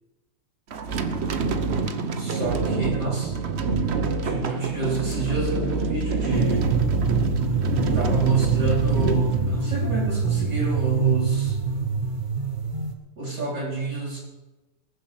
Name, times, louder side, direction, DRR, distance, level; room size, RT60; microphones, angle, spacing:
sound 1, 0.7-10.1, right 3 dB, 75° right, 0.6 m, -27 dB
voice 1, 2.2-3.4 4.2-6.8 7.9-11.6 13.2-14.2, right 4 dB, 50° right, -5 dB, 4.1 m, -27 dB
sound 2, 6.3-12.9, right 5 dB, 25° right, 1.4 m, -25 dB
19.5 x 7.3 x 6.6 m, 1.1 s
omnidirectional pair, 2.4 m